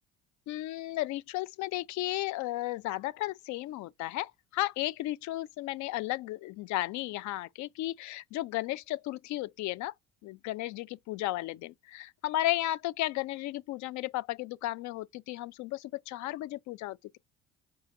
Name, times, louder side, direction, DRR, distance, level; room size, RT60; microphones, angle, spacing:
voice 1, 0.5-9.9 10.2-17.2, left 16 dB, 70° left, 0.4 m, -34 dB
4.7 x 3.8 x 2.3 m
supercardioid pair, 80°, 31 cm